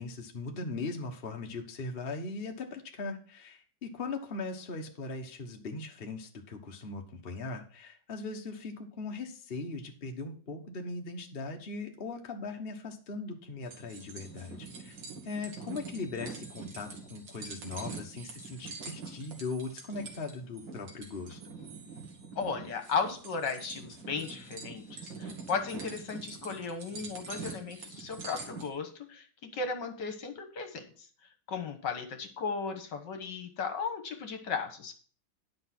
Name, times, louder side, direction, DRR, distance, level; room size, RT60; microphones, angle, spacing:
voice 1, 0.0-15.0 15.2-21.4, left 3 dB, 35° left, 3 dB, 1.3 m, -39 dB
sound 1, 13.6-28.7, right 4 dB, 70° right, 2.6 m, -45 dB
voice 2, 22.4-30.8 31.5-34.9, left 5 dB, 65° left, 7 dB, 1.8 m, -35 dB
10.5 x 5.3 x 6.0 m, 0.42 s
omnidirectional pair, 2.2 m